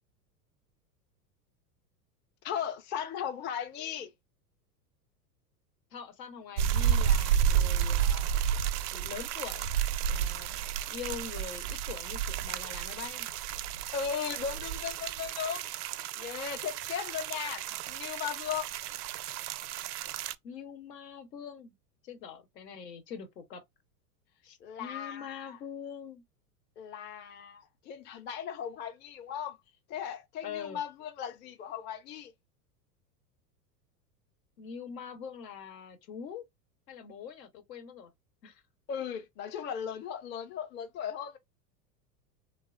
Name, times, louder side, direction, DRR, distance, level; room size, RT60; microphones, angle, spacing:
voice 1, 2.4-4.1 13.9-15.7 16.2-18.7 24.6-25.6 26.8-29.6 29.9-32.3 38.9-41.4, left 8 dB, 25° left, 0.4 m, -37 dB
voice 2, 5.9-8.3 8.9-9.8 10.0-13.3 20.4-21.7 22.0-23.6 24.4-26.2 30.4-30.8 34.6-36.5 36.9-38.1 38.4-38.6, left 7 dB, 80° left, 1.0 m, -43 dB
sound 1, 6.6-20.3, right 9 dB, 70° right, 0.5 m, -31 dB
3.2 x 2.0 x 2.3 m
hypercardioid pair, 100°, 49 cm